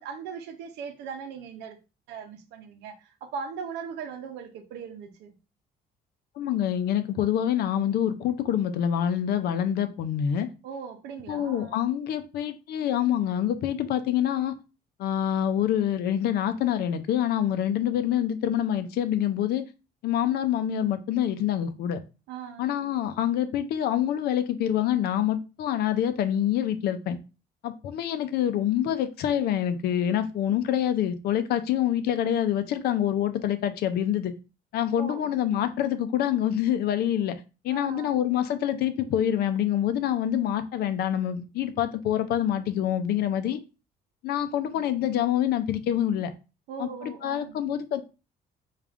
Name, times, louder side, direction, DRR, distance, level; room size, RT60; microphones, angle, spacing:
voice 1, 0.0-1.8 2.1-5.3 10.6-11.8 22.3-22.7 35.0-35.3 37.7-38.1 46.7-47.6, right 6 dB, 85° right, 0.7 m, -39 dB
voice 2, 6.4-10.5 11.3-14.5 15.0-19.6 20.0-22.0 22.6-27.2 27.6-34.3 34.7-37.4 37.6-43.6 44.2-46.3 46.8-48.0, left 10 dB, 70° left, 0.5 m, -26 dB
3.4 x 2.4 x 3.6 m
cardioid pair, 110°, 17 cm